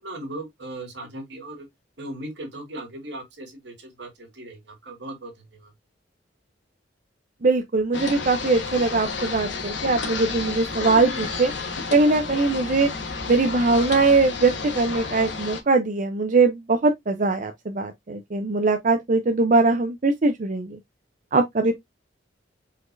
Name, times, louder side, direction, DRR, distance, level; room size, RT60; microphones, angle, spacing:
voice 1, 0.0-1.7 2.0-5.7, right 1 dB, 70° right, 1.9 m, -38 dB
voice 2, 7.4-11.5 11.9-12.9 13.3-20.8 21.3-21.7, right 3 dB, 45° right, 0.6 m, -21 dB
sound 1, 7.9-15.6, left 4 dB, 80° left, 1.3 m, -31 dB
5.0 x 4.2 x 2.5 m
head